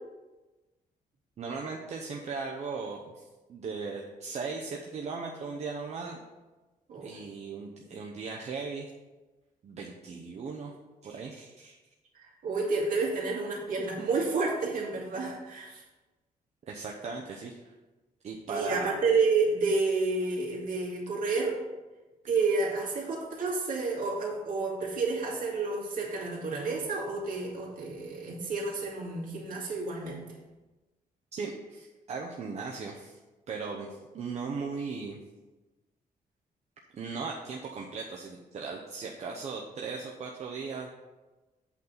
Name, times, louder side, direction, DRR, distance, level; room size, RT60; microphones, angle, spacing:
voice 1, 1.4-6.2 7.0-8.9 9.6-10.7 11.0-11.8 16.7-17.7 18.2-19.0 31.3-33.2 33.5-35.2 36.9-40.9, right 4 dB, 45° right, 0 dB, 0.8 m, -38 dB
voice 2, 12.1-15.8 18.5-21.6 22.3-30.3 33.7-33.9, right 3 dB, 65° right, -3 dB, 2.4 m, -30 dB
8.4 x 4.0 x 7.0 m, 1.1 s
wide cardioid pair, 155°, 15 cm